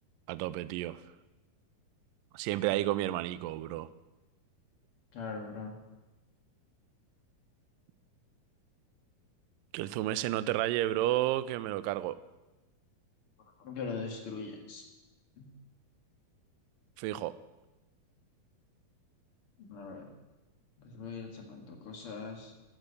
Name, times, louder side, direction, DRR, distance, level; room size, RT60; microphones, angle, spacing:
voice 1, 0.3-1.0 2.3-3.9 9.7-12.2 17.0-17.3, right 15 dB, 80° right, 14 dB, 2.1 m, -31 dB
voice 2, 5.1-5.7 13.6-14.8 15.4-15.5 19.6-20.1 20.8-22.5, left 4 dB, 45° left, 1 dB, 2.4 m, -41 dB
11.5 x 8.2 x 8.2 m, 1.1 s
omnidirectional pair, 4.1 m